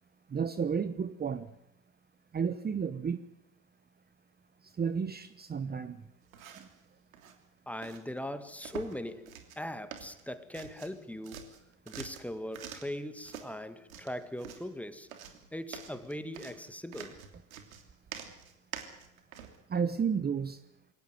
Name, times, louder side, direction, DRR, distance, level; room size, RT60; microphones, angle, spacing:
voice 1, 0.3-1.5 2.3-3.2 4.6-6.1 6.5-6.7 19.7-20.6, right 6 dB, 25° right, 1.2 m, -32 dB
sound 1, 6.2-6.8 7.1-7.4 7.8-8.0 8.6-9.0 9.3-9.6 9.9-11.0 11.2-13.0 13.2-13.5 13.9-14.7 15.1-19.6, right 8 dB, 85° right, 3.2 m, -46 dB
voice 2, 7.7-11.5 11.9-15.1 15.5-17.2, left 1 dB, 5° left, 2.0 m, -40 dB
23.0 x 17.5 x 9.5 m
hypercardioid pair, 75°, 41 cm